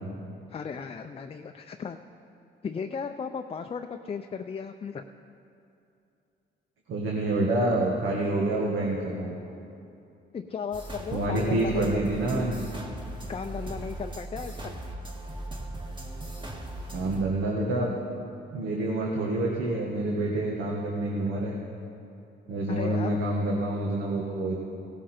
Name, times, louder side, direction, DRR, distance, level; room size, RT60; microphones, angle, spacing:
voice 1, 0.5-2.0 2.6-5.0 10.3-12.0 13.3-14.8 22.7-23.2, left 6 dB, 30° left, 5 dB, 0.5 m, -35 dB
voice 2, 6.9-9.4 11.1-12.7 16.9-17.9 18.5-21.5 22.5-24.5, right 2 dB, 80° right, -2 dB, 1.6 m, -27 dB
sound 1, 10.7-17.2, right 1 dB, 25° right, 1.8 m, -38 dB
17.0 x 12.5 x 4.4 m, 2.7 s
cardioid pair, 90°, 20 cm